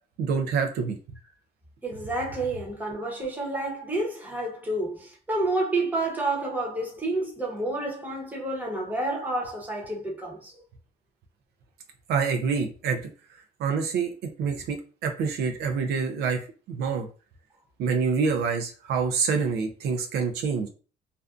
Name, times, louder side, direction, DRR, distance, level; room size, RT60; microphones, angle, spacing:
voice 1, 0.2-1.0 12.1-13.0 13.6-14.1 14.4-14.8 15.0-17.1 17.8-20.7, right 5 dB, 75° right, 0.5 m, -26 dB
voice 2, 1.8-10.5, right 2 dB, 10° right, 0.9 m, -29 dB
2.5 x 2.2 x 2.4 m
cardioid pair, 110°, 17 cm